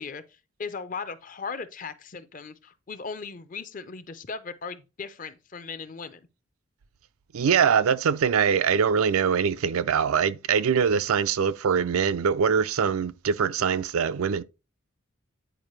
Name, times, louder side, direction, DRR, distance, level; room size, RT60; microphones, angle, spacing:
voice 1, 0.0-6.3, left 5 dB, 40° left, 0.5 m, -38 dB
voice 2, 7.3-14.4, right 6 dB, 90° right, 0.4 m, -23 dB
9.0 x 4.7 x 3.1 m
head